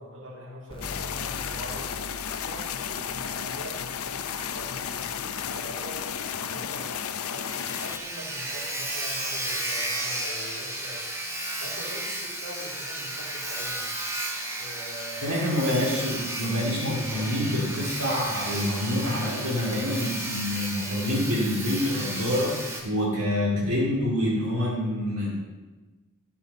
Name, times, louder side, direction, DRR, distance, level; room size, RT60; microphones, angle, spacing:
voice 1, 0.0-7.0 7.3-11.0 11.6-13.9 14.5-15.4, equal, 60° right, -5 dB, 3.0 m, -43 dB
sound 1, 0.7-8.0, left 3 dB, 25° left, 0.6 m, -46 dB
sound 2, 0.8-8.0, left 8 dB, 85° left, 0.6 m, -33 dB
Sawing, 5.9-6.0 6.3-6.4 6.8-6.9 7.1-22.8, right 1 dB, 10° right, 1.3 m, -33 dB
voice 2, 15.2-25.3, left 1 dB, 85° right, -5 dB, 2.5 m, -27 dB
12.0 x 5.7 x 5.5 m, 1.2 s
head